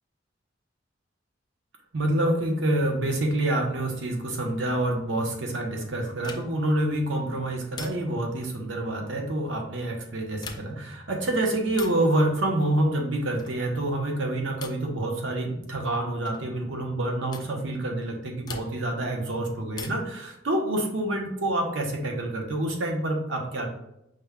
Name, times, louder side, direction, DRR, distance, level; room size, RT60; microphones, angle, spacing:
voice 1, 1.9-23.7, right 1 dB, 80° right, 2 dB, 0.8 m, -27 dB
sound 1, 6.2-6.7 7.7-8.3 10.3-10.9 11.7-12.1 13.4-13.7 14.6-14.9 16.2-16.5 17.3-17.5 18.4-19.0 19.7-20.2 21.7-22.4, left 5 dB, 20° left, 0.3 m, -43 dB
5.1 x 2.2 x 3.4 m, 0.83 s
head